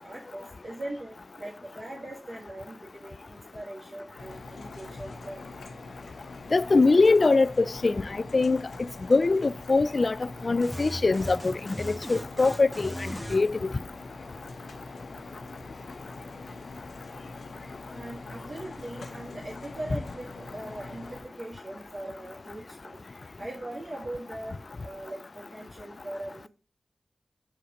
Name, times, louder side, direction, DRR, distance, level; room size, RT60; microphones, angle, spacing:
voice 1, 0.0-5.4 17.9-23.0 23.4-26.5, right 1 dB, 60° right, 1.9 m, -40 dB
sound 1, 4.2-21.2, left 3 dB, 90° left, 0.9 m, -44 dB
voice 2, 6.5-8.0 8.3-8.6 9.1-10.2 10.4-12.9 13.3-13.7, left 3 dB, 55° left, 0.3 m, -22 dB
sound 2, 10.6-13.4, equal, 5° left, 1.2 m, -37 dB
6.4 x 4.2 x 5.1 m
cardioid pair, 45°, 0 cm